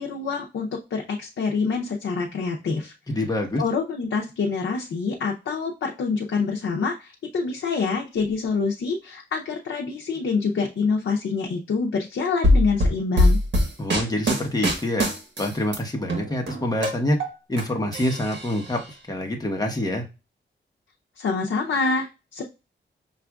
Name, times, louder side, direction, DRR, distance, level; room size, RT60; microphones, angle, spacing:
voice 1, 0.0-2.9 3.6-13.4 21.2-22.4, left 4 dB, 90° left, 0 dB, 0.6 m, -26 dB
voice 2, 3.1-3.6 13.8-15.1 15.4-17.2 17.5-18.8 19.1-20.1, left 1 dB, 20° left, 1 dB, 0.9 m, -26 dB
sound 1, 12.4-15.8 16.1-17.6 17.9-18.8, left 1 dB, 65° right, 1.3 m, -22 dB
5.8 x 2.4 x 2.3 m, 0.28 s
wide cardioid pair, 105°, 20 cm